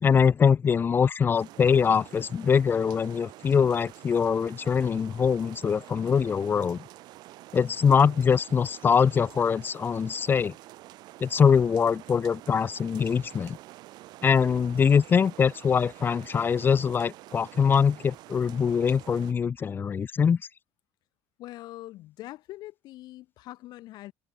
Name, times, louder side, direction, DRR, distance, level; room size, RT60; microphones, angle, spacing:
voice 1, 0.0-6.8 7.5-10.5 11.2-13.6 14.2-20.4, left 6 dB, 30° left, 0.4 m, -23 dB
sound 1, 1.3-19.3, right 17 dB, 70° right, 3.9 m, -48 dB
voice 2, 21.4-24.1, left 16 dB, 70° left, 5.6 m, -43 dB
cardioid pair, 120°, 7 cm